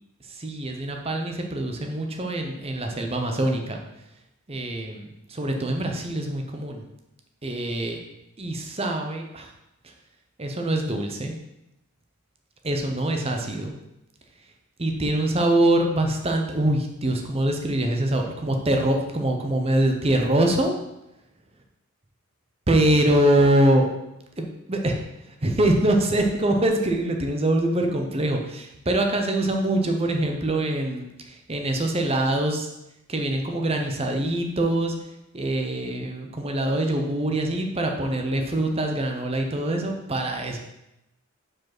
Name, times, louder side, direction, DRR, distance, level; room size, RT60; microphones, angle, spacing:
voice 1, 0.3-3.8 4.5-6.8 7.4-8.0 8.4-9.5 9.8-9.9 10.4-11.3 12.6-13.7 14.8-20.7 22.7-23.9 24.4-32.7 33.1-34.9 35.3-40.6, right 1 dB, 25° right, 3 dB, 0.8 m, -24 dB
5.1 x 4.9 x 6.0 m, 0.89 s
head